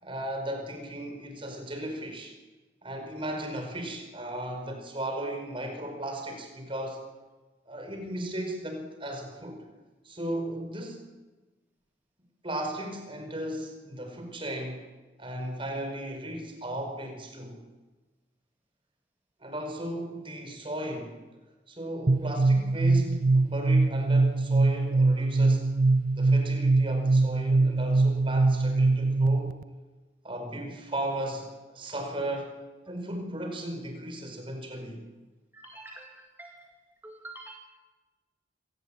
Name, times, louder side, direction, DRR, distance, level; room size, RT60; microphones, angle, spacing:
voice 1, 0.0-2.3 2.8-7.0 7.7-9.6 10.0-11.0 12.4-14.8 15.2-17.6 19.4-21.1 21.7-25.7 26.1-29.5 30.2-32.5 32.9-35.0, right 1 dB, 30° right, 4 dB, 5.0 m, -36 dB
sound 1, 22.1-29.6, right 3 dB, 50° right, 0.7 m, -23 dB
voice 2, 35.5-37.5, right 2 dB, 10° right, 2 dB, 1.9 m, -47 dB
25.0 x 18.0 x 9.0 m, 1.2 s
head